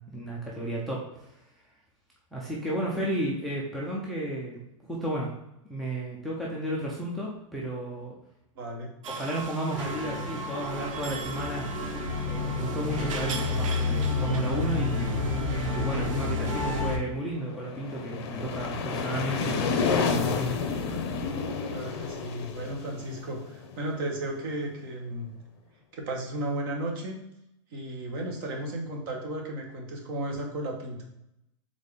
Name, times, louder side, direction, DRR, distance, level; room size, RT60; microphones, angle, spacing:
voice 1, 0.0-1.3 2.3-5.3 5.7-8.1 9.1-11.7 12.2-15.1 15.5-20.6, right 1 dB, ahead, -4 dB, 0.3 m, -33 dB
voice 2, 8.5-8.9 10.1-10.3 19.2-19.6 21.7-25.3 25.9-27.2 27.7-31.0, right 1 dB, 40° right, 1 dB, 1.0 m, -34 dB
sound 1, 9.0-17.0, right 5 dB, 80° right, 0.6 m, -40 dB
sound 2, 9.7-17.0, left 3 dB, 65° right, 1.6 m, -30 dB
sound 3, 17.4-24.2, left 5 dB, 50° left, 0.6 m, -30 dB
4.1 x 3.7 x 3.3 m, 0.84 s
supercardioid pair, 175°, 17 cm